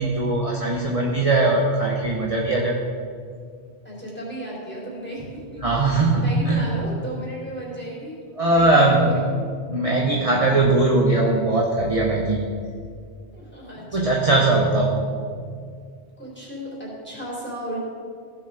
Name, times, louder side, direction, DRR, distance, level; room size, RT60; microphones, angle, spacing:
voice 1, 0.0-2.7 5.6-6.7 8.4-9.0 9.7-12.4 13.9-14.9, right 2 dB, 30° right, -2 dB, 1.1 m, -20 dB
voice 2, 3.8-5.6 5.9-9.4 13.3-14.3 16.2-17.8, right 1 dB, 10° left, -6 dB, 3.6 m, -34 dB
16.0 x 6.8 x 5.0 m, 2.1 s
omnidirectional pair, 1.2 m